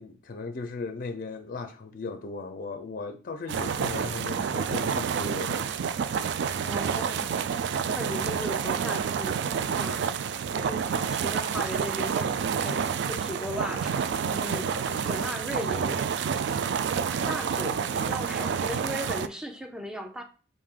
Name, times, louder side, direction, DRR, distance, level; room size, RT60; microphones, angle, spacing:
voice 1, 0.0-5.7 15.0-15.1, left 3 dB, 45° left, 0.4 m, -37 dB
sound 1, 3.5-19.3, right 6 dB, 65° right, 0.3 m, -29 dB
voice 2, 6.6-7.4 7.9-10.1 10.4-12.3 12.6-16.2 17.3-20.2, equal, 5° right, 0.6 m, -37 dB
4.9 x 2.5 x 3.6 m
head